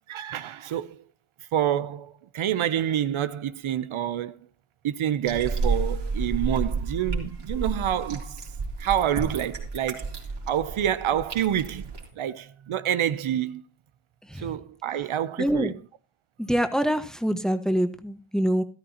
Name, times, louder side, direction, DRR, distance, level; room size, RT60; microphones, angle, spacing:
voice 1, 0.1-1.0 1.5-4.4 4.8-8.5 8.8-10.1 10.5-13.6 14.4-15.7, right 10 dB, 80° right, 0.8 m, -27 dB
sound 1, 5.2-12.1, right 3 dB, 55° right, 3.4 m, -31 dB
voice 2, 14.2-14.5 15.4-15.8 16.4-18.6, equal, ahead, 1.3 m, -25 dB
14.0 x 13.0 x 2.9 m
cardioid pair, 80°, 49 cm